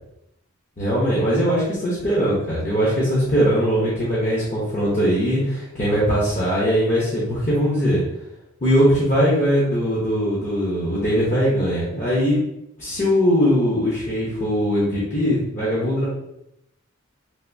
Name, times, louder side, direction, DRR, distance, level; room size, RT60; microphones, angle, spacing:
voice 1, 0.8-8.0 8.6-12.4 12.8-16.1, equal, 40° left, -7 dB, 0.8 m, -20 dB
3.4 x 2.6 x 2.6 m, 0.84 s
head